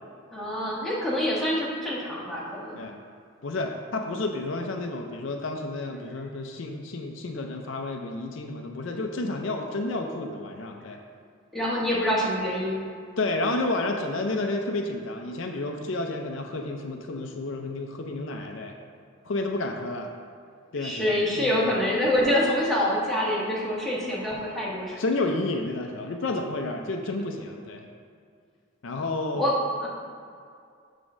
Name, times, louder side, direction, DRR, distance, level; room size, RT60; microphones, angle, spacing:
voice 1, 0.3-2.8 11.5-12.8 20.8-25.0 29.3-29.9, left 1 dB, ahead, -7 dB, 1.2 m, -26 dB
voice 2, 3.4-11.0 13.2-18.7 19.2-20.1 20.7-21.8 25.0-27.9 28.8-29.5, left 2 dB, 65° left, 3 dB, 0.5 m, -31 dB
7.1 x 3.6 x 6.1 m, 2.2 s
head